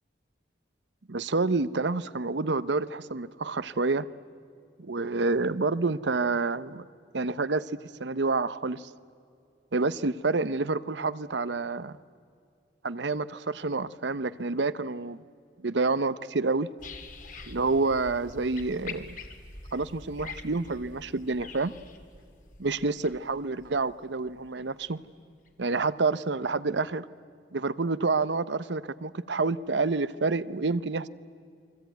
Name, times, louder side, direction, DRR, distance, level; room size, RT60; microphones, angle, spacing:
voice 1, 1.1-4.1 4.8-6.8 7.1-7.7 8.0-8.9 9.7-12.0 12.8-15.2 15.6-16.7 17.5-19.2 19.7-21.7 22.6-25.0 25.6-27.1 27.5-31.1, right 3 dB, 70° right, 16 dB, 0.8 m, -28 dB
sound 1, 16.8-24.9 25.5-25.6, left 4 dB, 45° left, 2.3 m, -45 dB
29.0 x 22.0 x 9.3 m, 2.3 s
head